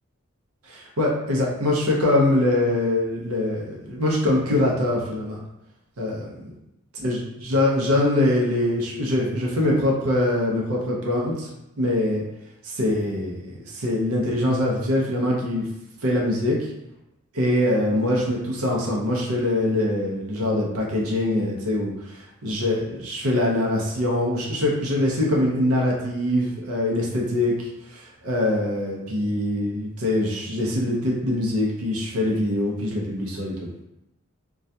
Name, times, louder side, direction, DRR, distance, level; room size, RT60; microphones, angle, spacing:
voice 1, 0.7-5.4 6.0-6.3 7.0-11.5 11.8-12.2 12.6-15.7 16.0-16.7 17.3-33.7, left 1 dB, 80° right, -2 dB, 0.6 m, -23 dB
2.3 x 2.2 x 2.6 m, 0.89 s
head